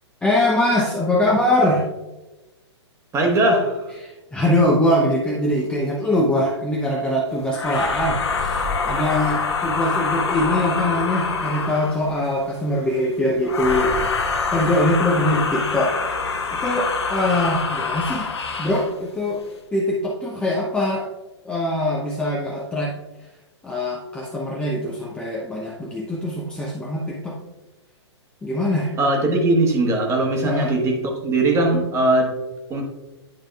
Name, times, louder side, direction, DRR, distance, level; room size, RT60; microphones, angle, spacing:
voice 1, 0.2-1.9 4.0-16.0 16.5-18.3 18.6-19.4 19.7-21.1 21.4-23.0 23.6-27.4 28.4-29.0 30.5-30.7, left 1 dB, 5° left, -3 dB, 0.7 m, -22 dB
voice 2, 3.1-3.9 29.0-32.4 32.7-32.8, right 2 dB, 20° right, 1 dB, 1.3 m, -20 dB
sound 1, 7.5-12.1 13.4-18.9, left 4 dB, 65° left, 1.1 m, -25 dB
10.5 x 5.1 x 2.4 m, 1.1 s
figure-of-eight pair, 110°, 15 cm